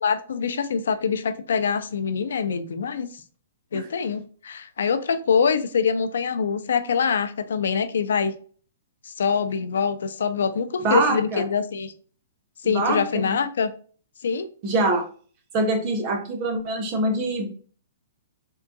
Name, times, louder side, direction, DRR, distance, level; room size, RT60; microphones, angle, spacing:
voice 1, 0.0-3.1 3.7-8.3 9.1-11.9 12.6-13.7 14.2-14.5, left 6 dB, 75° left, 10 dB, 0.4 m, -24 dB
voice 2, 10.8-11.4 12.6-13.4 14.6-15.1 15.5-17.5, right 2 dB, 25° right, 4 dB, 0.6 m, -24 dB
3.6 x 2.3 x 2.5 m, 0.43 s
hypercardioid pair, 175°, 0 cm